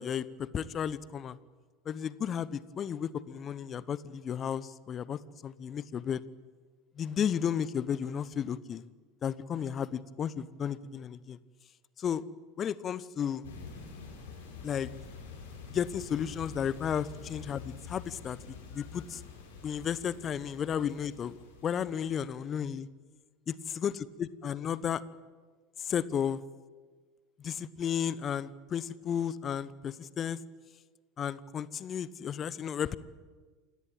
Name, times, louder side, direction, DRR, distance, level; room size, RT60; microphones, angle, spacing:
voice 1, 0.0-1.4 1.8-6.2 7.0-8.9 9.2-11.4 12.0-12.2 12.6-13.4 14.6-14.9 15.7-18.4 18.7-19.2 19.6-21.4 21.6-22.9 23.8-23.9 24.2-25.0 25.8-26.4 27.4-30.4 31.2-33.0, left 8 dB, 35° left, 18 dB, 1.0 m, -33 dB
sound 1, 13.4-22.5, left 5 dB, 65° left, 7.2 m, -47 dB
28.0 x 17.0 x 9.2 m, 1.4 s
figure-of-eight pair, 75°, 0 cm